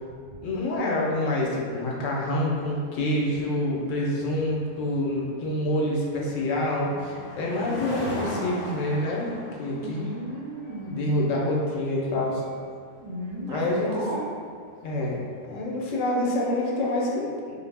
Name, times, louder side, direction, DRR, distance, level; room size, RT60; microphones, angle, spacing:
voice 1, 0.4-10.1 10.9-12.4 13.5-14.1 14.8-15.2 15.5-17.6, left 1 dB, 85° left, -3 dB, 0.9 m, -27 dB
sound 1, 2.3-15.7, left 1 dB, 30° left, 1.2 m, -41 dB
voice 2, 9.8-11.1 13.0-14.3, right 1 dB, 70° right, -5 dB, 0.9 m, -34 dB
2.4 x 2.0 x 3.2 m, 2.1 s
omnidirectional pair, 1.3 m